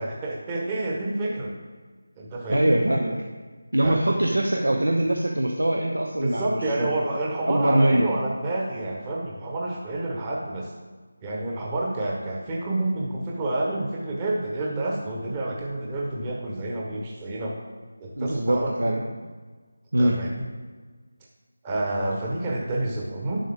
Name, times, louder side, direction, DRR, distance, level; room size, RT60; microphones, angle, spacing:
voice 1, 0.0-1.5 2.2-2.8 3.8-4.0 6.2-10.7 11.2-17.5 18.0-18.7 20.0-20.4 21.6-23.4, right 2 dB, 20° right, -3 dB, 1.1 m, -29 dB
voice 2, 2.5-3.2 3.7-7.0 7.5-8.1 18.2-19.0 19.9-20.2, right 1 dB, 75° right, 2 dB, 0.9 m, -22 dB
10.0 x 7.5 x 3.6 m, 1.4 s
figure-of-eight pair, 160°, 0 cm